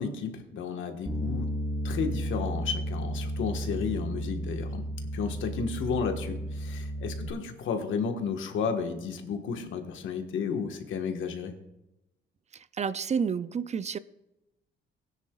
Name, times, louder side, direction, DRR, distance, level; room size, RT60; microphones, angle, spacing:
voice 1, 0.0-1.5 1.8-4.8 5.1-11.5, left 6 dB, 75° left, 1.5 m, -32 dB
Bass guitar, 1.1-7.3, right 1 dB, 5° right, 1.6 m, -33 dB
voice 2, 12.5-14.0, right 6 dB, 35° right, 0.4 m, -30 dB
17.5 x 9.8 x 2.4 m
cardioid pair, 90°, 20 cm